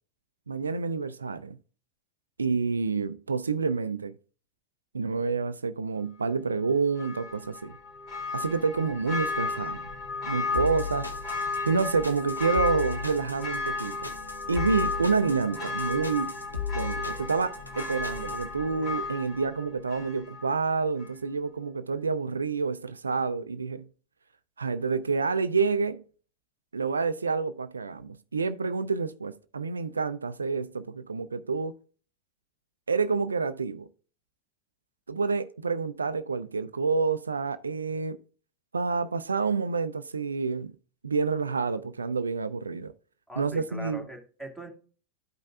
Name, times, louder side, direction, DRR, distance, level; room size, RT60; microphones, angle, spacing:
voice 1, 0.5-1.6 2.4-4.1 4.9-7.8 8.3-9.8 10.2-11.1 11.7-14.1 14.5-16.3 16.7-23.9 24.6-26.0 26.7-31.7 32.9-33.9 35.1-38.2 38.7-40.7 41.0-42.9 43.4-44.1, right 4 dB, 75° right, 0.3 m, -28 dB
Church bell, 7.0-20.6 21.0-21.1, left 3 dB, 35° left, 2.6 m, -34 dB
sound 1, 10.5-18.4, left 6 dB, 85° left, 0.9 m, -36 dB
voice 2, 43.3-44.7, right 2 dB, 5° left, 1.9 m, -41 dB
13.0 x 5.2 x 2.3 m
figure-of-eight pair, 90°, 0 cm